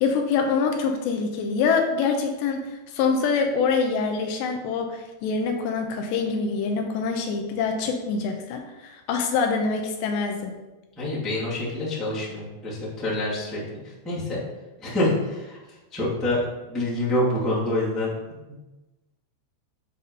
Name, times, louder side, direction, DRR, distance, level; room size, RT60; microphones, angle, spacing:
voice 1, 0.0-10.5, left 5 dB, 85° left, 4 dB, 2.9 m, -25 dB
voice 2, 11.0-14.4 14.8-15.6 15.9-16.4 16.7-18.1 18.5-18.6, left 1 dB, ahead, -8 dB, 1.1 m, -26 dB
8.3 x 4.1 x 5.4 m, 1.1 s
omnidirectional pair, 5.2 m